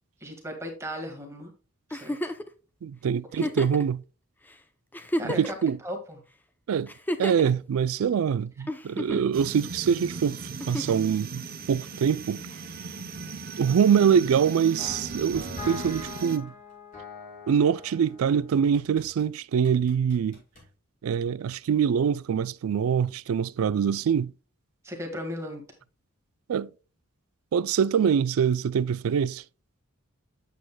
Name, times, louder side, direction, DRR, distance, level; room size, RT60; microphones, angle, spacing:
voice 1, 0.2-1.5 1.9-2.2 3.4-3.5 5.2-5.4 5.8-6.2 24.8-25.6, equal, 15° right, 1.6 m, -36 dB
Giggle, 1.9-2.5 3.3-3.8 4.5-4.6 4.9-5.7 6.9-7.5 8.7-9.3 10.6-11.1 12.5-12.6, left 1 dB, 10° left, 0.5 m, -31 dB
voice 2, 2.8-4.0 5.2-5.8 6.7-6.9 7.2-12.4 13.6-16.5 17.5-20.4 21.0-24.3 26.5-26.7 27.5-29.4, right 7 dB, 85° right, 0.3 m, -24 dB
sound 1, 9.3-16.4, right 5 dB, 45° right, 0.7 m, -38 dB
sound 2, 14.8-19.3 19.6-20.7, left 4 dB, 40° left, 4.1 m, -43 dB
8.4 x 8.0 x 2.2 m
head